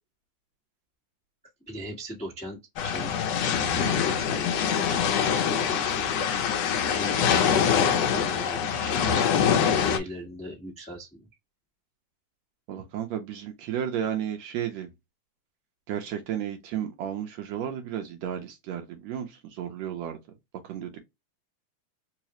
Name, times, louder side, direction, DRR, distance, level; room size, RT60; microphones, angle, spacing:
voice 1, 1.7-3.2 3.5-6.0 6.9-9.5 9.8-11.3, equal, 5° left, 0.4 m, -39 dB
sound 1, 2.8-10.0, left 7 dB, 70° left, 1.6 m, -24 dB
voice 2, 12.7-14.9 15.9-20.2 20.6-21.0, right 9 dB, 75° right, 1.8 m, -33 dB
4.8 x 2.1 x 2.9 m
omnidirectional pair, 3.6 m